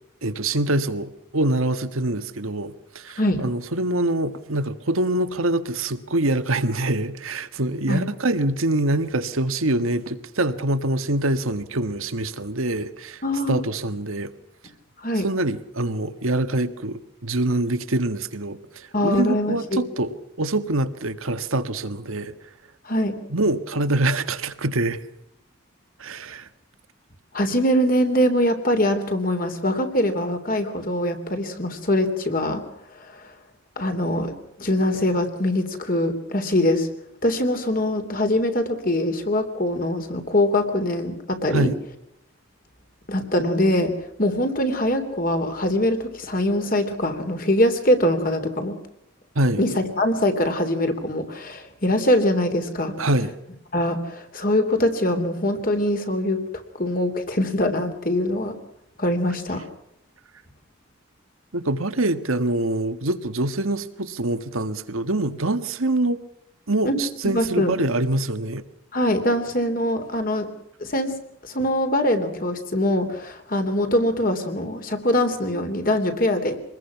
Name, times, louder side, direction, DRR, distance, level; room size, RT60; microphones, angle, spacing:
voice 1, 0.2-13.2 13.5-14.3 15.2-22.3 23.3-25.0 26.0-26.5 41.5-41.8 49.4-49.6 53.0-53.3 61.5-66.2 66.7-68.6, right 2 dB, 80° right, 1.6 m, -25 dB
voice 2, 13.2-13.6 15.0-15.3 18.9-19.8 22.8-23.2 27.3-32.6 33.1-33.3 33.8-34.3 34.6-36.9 37.2-41.7 43.1-43.9 44.2-48.8 49.6-52.9 53.7-56.4 56.8-58.5 59.0-59.7 66.8-67.7 68.9-70.5 70.8-71.1 71.5-76.6, left 1 dB, 40° left, 3.2 m, -23 dB
26.0 x 20.5 x 5.9 m
head